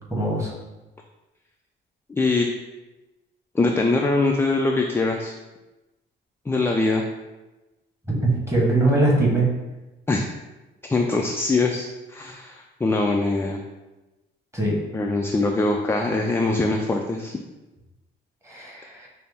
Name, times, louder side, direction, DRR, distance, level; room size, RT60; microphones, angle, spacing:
voice 1, 0.1-0.5 8.1-9.5 14.5-14.8 18.4-19.1, right 2 dB, 15° right, -3 dB, 1.3 m, -21 dB
voice 2, 2.1-2.5 3.5-5.3 6.5-7.0 10.1-10.3 10.9-13.6 14.9-17.4, left 3 dB, 10° left, 1 dB, 0.3 m, -22 dB
5.6 x 2.0 x 3.4 m, 1.1 s
cardioid pair, 90°, 20 cm